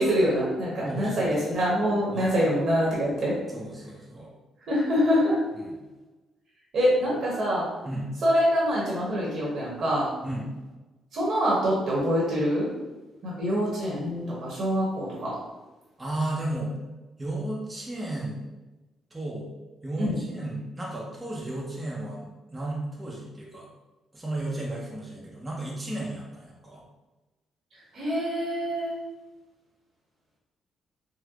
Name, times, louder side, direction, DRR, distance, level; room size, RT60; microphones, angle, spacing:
voice 1, 0.0-3.3 4.7-5.4 6.7-7.6 8.2-10.1 11.1-12.7 13.2-15.3 20.0-20.2 27.9-28.9, equal, 60° right, -6 dB, 1.1 m, -25 dB
voice 2, 0.8-1.5 2.1-2.3 3.5-4.3 5.6-5.8 7.8-8.1 10.2-10.5 16.0-16.7 17.2-18.4 19.1-19.5 19.8-23.7 24.1-26.8, right 1 dB, 20° right, -3 dB, 0.7 m, -34 dB
3.9 x 2.1 x 2.9 m, 1.1 s
cardioid pair, 90°, 0 cm